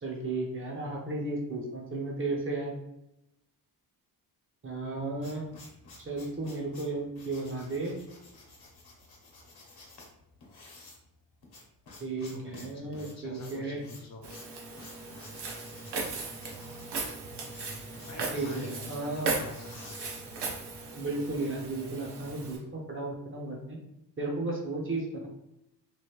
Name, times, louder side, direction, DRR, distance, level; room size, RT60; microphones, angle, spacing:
voice 1, 0.0-2.7 4.6-5.5 6.0-8.0 12.0-13.8 18.3-19.3 21.0-23.8 24.2-25.3, right 2 dB, 30° right, -1 dB, 0.6 m, -34 dB
sound 1, 4.8-20.8, left 2 dB, 70° left, 0.9 m, -52 dB
voice 2, 12.1-14.2 18.1-19.9, left 3 dB, 40° left, 0 dB, 0.5 m, -46 dB
Walk footsteps, 14.2-22.6, right 3 dB, 80° right, 0.8 m, -37 dB
3.1 x 2.6 x 3.0 m, 0.83 s
wide cardioid pair, 170°, 41 cm